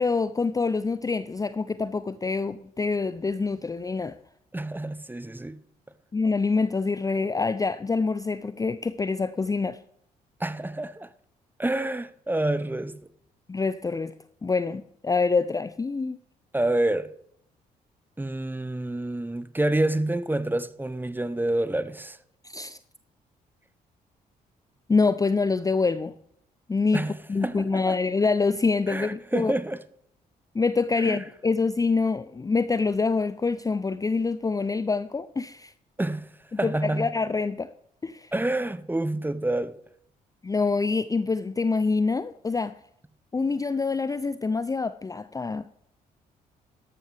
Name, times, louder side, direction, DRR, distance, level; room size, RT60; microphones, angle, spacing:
voice 1, 0.0-4.2 6.1-9.8 13.5-14.1 14.4-16.2 22.4-22.8 24.9-26.2 26.7-29.5 30.5-35.7 36.6-37.7 38.0-38.3 40.4-42.8 43.3-45.7, left 4 dB, 15° left, 0.5 m, -26 dB
voice 2, 4.5-5.6 10.4-11.1 11.6-13.0 16.5-17.1 18.2-22.2 26.9-28.0 28.9-29.8 31.0-31.2 36.0-36.3 36.6-37.1 38.3-39.7, right 1 dB, 10° right, 0.8 m, -28 dB
13.5 x 11.5 x 3.5 m
hypercardioid pair, 45°, 20 cm